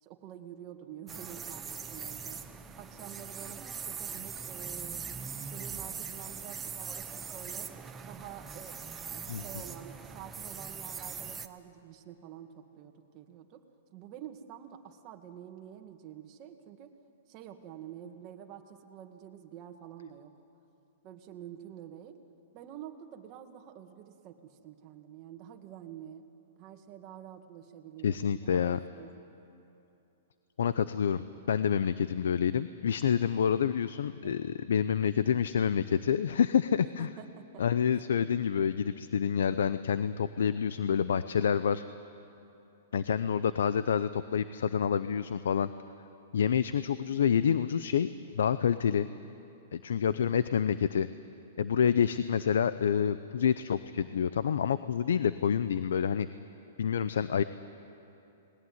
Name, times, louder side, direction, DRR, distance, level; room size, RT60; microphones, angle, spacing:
voice 1, 0.0-5.0 5.4-7.7 8.0-8.8 9.1-13.6 13.9-16.9 17.3-20.3 21.0-22.2 22.5-26.2 26.6-29.1 34.2-34.3 37.0-37.6 38.2-38.3, right 10 dB, 30° right, 4 dB, 2.0 m, -48 dB
sound 1, 1.1-11.5, right 6 dB, 15° right, 1.1 m, -41 dB
voice 2, 28.0-28.8 30.6-37.1 37.6-41.8 42.9-45.7 46.3-48.1 48.3-49.1 49.7-51.1 51.6-56.3 56.8-57.4, left 7 dB, 85° left, 13 dB, 0.7 m, -28 dB
29.5 x 20.0 x 9.6 m, 2.8 s
hypercardioid pair, 155°, 0 cm